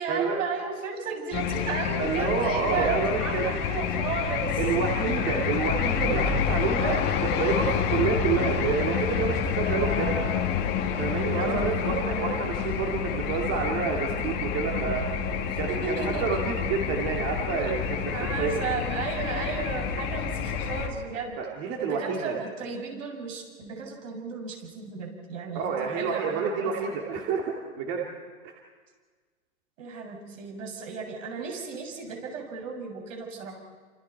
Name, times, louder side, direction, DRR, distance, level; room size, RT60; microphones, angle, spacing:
voice 1, 0.0-4.6 9.6-10.5 11.2-12.2 15.5-16.4 18.1-21.4 21.8-27.2 29.8-33.6, right 5 dB, 60° right, 1 dB, 7.3 m, -34 dB
sound 1, 1.3-20.9, left 7 dB, 25° left, 2.0 m, -28 dB
voice 2, 2.0-3.5 4.6-10.1 11.0-15.0 15.6-18.6 21.4-22.4 25.5-28.0 28.4-28.5, right 5 dB, 30° right, -1 dB, 2.5 m, -29 dB
29.0 x 27.0 x 4.6 m, 1.5 s
hypercardioid pair, 155°, 42 cm